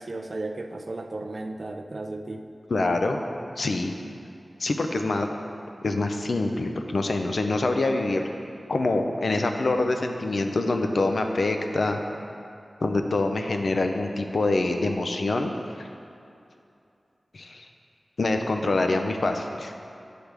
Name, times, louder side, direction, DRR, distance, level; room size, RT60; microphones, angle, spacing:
voice 1, 0.0-2.5, right 2 dB, 55° right, 5 dB, 0.4 m, -34 dB
voice 2, 2.7-3.2 3.6-3.9 4.6-5.3 5.8-8.3 8.7-12.0 12.8-15.5 15.8-15.9 17.3-17.7 18.2-19.7, left 2 dB, 70° left, 5 dB, 0.5 m, -25 dB
8.1 x 3.4 x 5.9 m, 2.6 s
wide cardioid pair, 60°, 0 cm